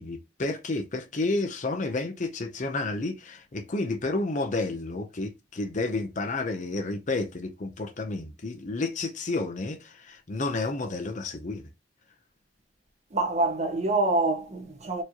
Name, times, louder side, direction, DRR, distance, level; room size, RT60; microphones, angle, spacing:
voice 1, 0.0-11.6, left 2 dB, 40° left, 0.7 m, -31 dB
voice 2, 13.1-15.0, right 2 dB, 35° right, 1.3 m, -26 dB
4.5 x 3.0 x 2.8 m
head